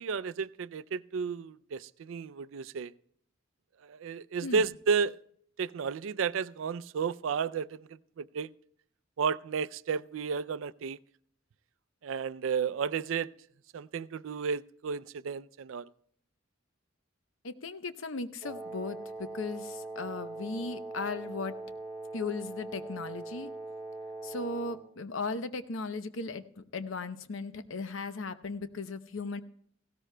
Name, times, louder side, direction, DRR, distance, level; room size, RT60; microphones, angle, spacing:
voice 1, 0.0-2.9 3.8-5.2 5.6-8.5 9.2-11.0 12.0-13.3 13.7-15.9, right 6 dB, 75° right, 0.4 m, -32 dB
voice 2, 17.4-21.6 22.1-23.5 24.2-29.4, left 3 dB, 75° left, 0.7 m, -37 dB
Wind instrument woodwind instrument, 18.4-24.9, right 2 dB, 10° right, 3.3 m, -41 dB
18.0 x 16.5 x 2.2 m
head